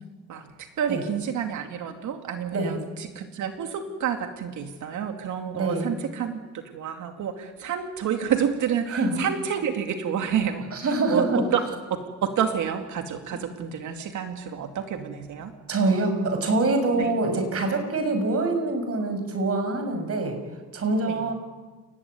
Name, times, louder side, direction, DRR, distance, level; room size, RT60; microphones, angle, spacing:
voice 1, 0.3-10.8 11.1-11.6 11.9-15.5 17.0-17.1 21.1-21.2, right 8 dB, 75° right, 5 dB, 2.6 m, -29 dB
voice 2, 5.5-5.9 8.9-9.2 10.7-11.5 15.7-20.4 20.7-21.3, right 2 dB, 50° right, 6 dB, 7.0 m, -25 dB
29.5 x 16.5 x 9.8 m, 1.3 s
cardioid pair, 90°, 30 cm